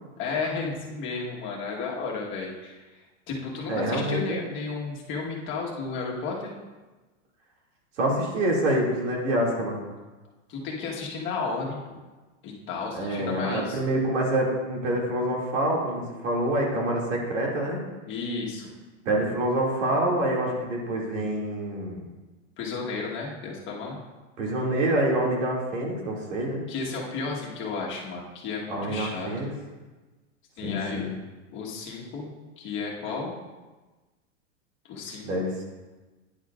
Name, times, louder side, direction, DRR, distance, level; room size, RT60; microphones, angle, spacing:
voice 1, 0.2-2.8 3.3-6.5 10.5-12.0 12.4-13.8 18.1-18.7 22.6-24.0 26.7-29.3 30.6-31.0 31.5-32.3 32.6-33.4 34.9-35.3, left 4 dB, 30° left, -2 dB, 1.3 m, -33 dB
voice 2, 3.7-4.4 8.0-9.8 12.9-17.8 19.1-22.0 24.4-26.6 28.7-29.5 30.6-31.1 35.2-35.5, right 1 dB, 75° right, -2 dB, 2.4 m, -26 dB
10.0 x 6.8 x 2.4 m, 1.2 s
supercardioid pair, 140°, 37 cm